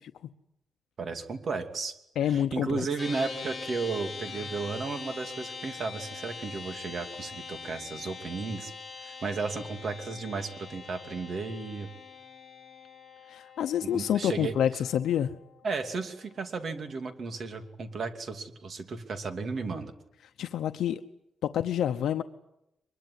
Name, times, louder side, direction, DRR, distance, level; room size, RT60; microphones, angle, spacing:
voice 1, 1.0-2.0 2.2-8.7 9.0-11.9 13.8-14.8 15.6-19.9, right 4 dB, 45° right, 7 dB, 2.7 m, -34 dB
voice 2, 2.2-2.9 13.3-15.3 20.4-21.0 21.4-22.2, left 10 dB, 85° left, 8 dB, 0.9 m, -28 dB
sound 1, 3.0-16.5, left 5 dB, 15° left, 5.0 m, -43 dB
23.5 x 21.5 x 9.6 m, 0.86 s
wide cardioid pair, 140°, 0 cm